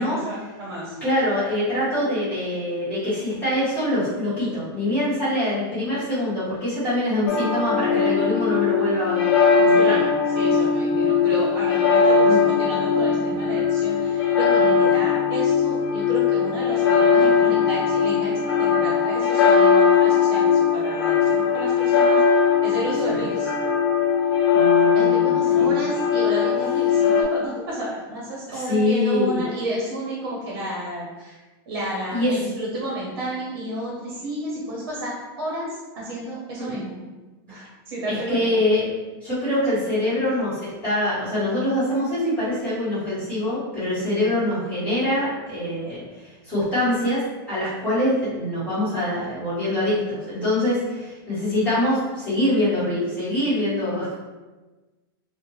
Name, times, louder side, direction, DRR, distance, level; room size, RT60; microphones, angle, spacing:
voice 1, 0.0-1.0 9.7-22.2 22.6-23.5 24.9-31.4 31.7-36.9 37.5-38.5 43.9-44.4, right 1 dB, 65° right, -4 dB, 0.8 m, -31 dB
voice 2, 1.0-10.0 12.1-12.4 23.1-23.2 24.5-25.8 28.5-29.4 32.1-32.3 36.6-36.8 38.0-38.9 39.2-47.2 47.5-54.1, left 1 dB, 10° left, -13 dB, 1.4 m, -24 dB
sound 1, 7.3-27.2, left 6 dB, 70° left, 0.5 m, -19 dB
2.6 x 2.1 x 3.0 m, 1.2 s
supercardioid pair, 165°, 13 cm